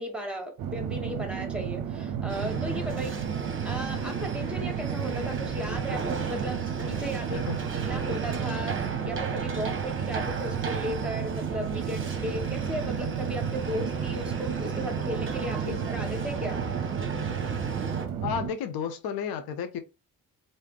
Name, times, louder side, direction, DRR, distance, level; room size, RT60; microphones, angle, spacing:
voice 1, 0.0-3.1 3.6-7.4 7.7-16.6, equal, ahead, 1.4 m, -36 dB
sound 1, 0.6-18.5, right 8 dB, 50° right, 0.7 m, -33 dB
sound 2, 2.3-18.1, right 4 dB, 30° right, 0.9 m, -35 dB
voice 2, 7.3-7.7 15.6-15.8 18.2-19.8, left 7 dB, 55° left, 0.6 m, -33 dB
3.2 x 2.7 x 3.1 m
hypercardioid pair, 40°, 44 cm